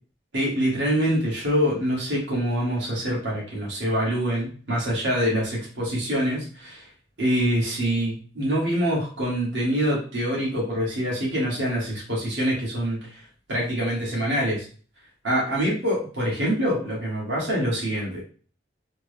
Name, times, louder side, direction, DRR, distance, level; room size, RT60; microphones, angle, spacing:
voice 1, 0.3-6.9 7.2-13.2 13.5-14.7 15.2-18.2, equal, 70° right, -5 dB, 1.4 m, -25 dB
3.3 x 2.0 x 3.2 m, 0.40 s
head